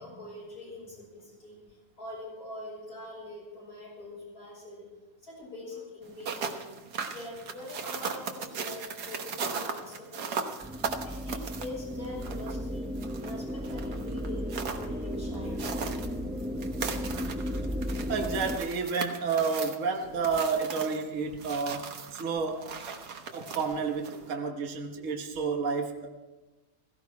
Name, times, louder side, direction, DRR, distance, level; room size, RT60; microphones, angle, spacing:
voice 1, 0.0-4.9 5.2-6.7 7.1-10.6 11.0-12.9 13.2-15.6 23.2-23.5, left 1 dB, 70° left, -3 dB, 6.9 m, -44 dB
sound 1, 6.0-24.3, right 5 dB, 75° right, 1.7 m, -39 dB
sound 2, 10.6-18.6, equal, 5° right, 0.5 m, -34 dB
voice 2, 18.1-22.7 23.3-26.1, right 5 dB, 55° right, 3 dB, 1.6 m, -30 dB
16.5 x 16.0 x 4.7 m, 1.2 s
omnidirectional pair, 1.7 m